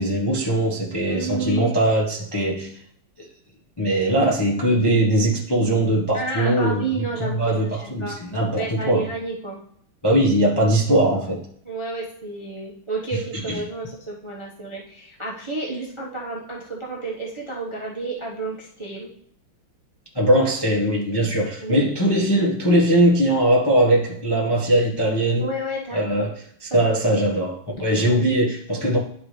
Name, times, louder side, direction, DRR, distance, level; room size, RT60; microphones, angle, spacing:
voice 1, 0.0-2.7 3.2-3.3 3.8-6.9 7.2-9.1 10.0-11.4 13.3-13.6 20.1-25.5 25.9-26.3 26.6-29.0, right 1 dB, 20° left, -3 dB, 0.8 m, -20 dB
voice 2, 1.1-1.8 6.1-8.2 8.6-9.6 11.6-19.1 21.6-21.9 25.4-26.0 26.7-26.9 27.9-28.3, right 3 dB, 20° right, -3 dB, 0.8 m, -31 dB
11.5 x 3.9 x 3.3 m, 0.65 s
omnidirectional pair, 2.3 m